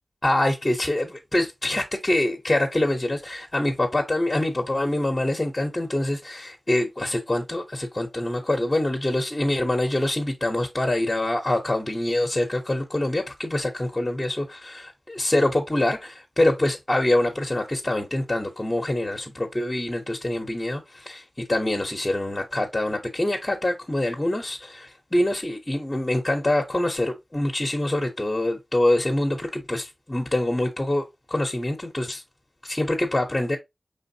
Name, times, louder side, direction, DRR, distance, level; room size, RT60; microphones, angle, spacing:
voice 1, 0.2-21.2 21.5-32.2 32.6-33.6, left 1 dB, 25° left, 0.8 m, -25 dB
5.0 x 3.4 x 2.7 m
wide cardioid pair, 75°, 0 cm